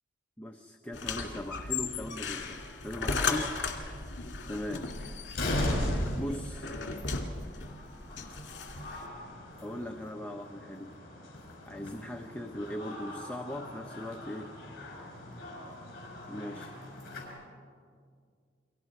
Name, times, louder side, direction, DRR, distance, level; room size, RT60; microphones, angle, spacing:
voice 1, 0.4-3.6 4.5-4.9 6.1-6.8 9.6-10.9 11.7-14.5 16.3-16.7, equal, 10° left, 3 dB, 0.7 m, -39 dB
sound 1, 0.9-9.1, left 4 dB, 70° left, 2.4 m, -36 dB
sound 2, 2.0-2.2 3.1-3.2 3.5-3.6 4.8-4.9 5.3-17.3, left 1 dB, 50° left, 6.0 m, -39 dB
29.5 x 23.0 x 4.9 m, 2.1 s
head